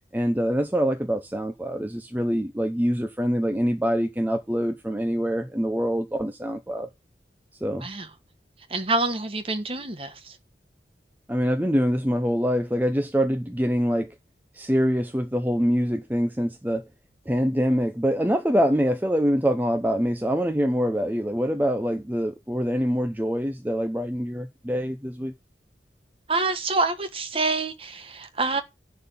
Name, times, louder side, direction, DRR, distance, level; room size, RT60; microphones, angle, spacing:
voice 1, 0.1-6.9 7.6-7.9 11.3-14.1 14.5-16.9 17.3-25.3, equal, 10° right, 0.7 m, -25 dB
voice 2, 8.7-10.4 26.3-28.6, right 3 dB, 30° right, 1.3 m, -27 dB
11.0 x 4.1 x 7.0 m
head